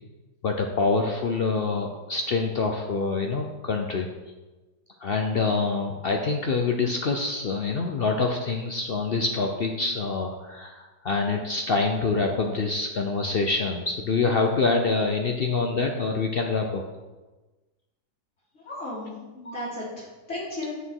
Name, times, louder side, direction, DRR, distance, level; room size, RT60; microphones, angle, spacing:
voice 1, 0.4-4.1 5.0-16.8 19.5-19.6, left 4 dB, 70° left, 3 dB, 0.5 m, -26 dB
voice 2, 18.5-20.8, left 1 dB, 40° left, -8 dB, 3.7 m, -35 dB
8.7 x 6.9 x 4.6 m, 1.2 s
omnidirectional pair, 1.9 m